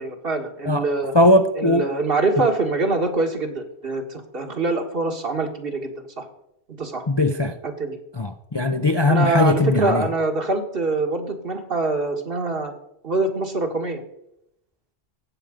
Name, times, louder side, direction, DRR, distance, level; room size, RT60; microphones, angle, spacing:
voice 1, 0.0-1.1 1.6-6.3 6.8-7.1 7.6-8.0 9.1-12.7 13.0-14.0, right 3 dB, 55° right, 4 dB, 1.9 m, -24 dB
voice 2, 1.1-1.9 7.1-7.6 8.1-10.1, left 2 dB, 30° left, 6 dB, 0.6 m, -19 dB
16.5 x 7.2 x 5.1 m, 0.79 s
omnidirectional pair, 1.2 m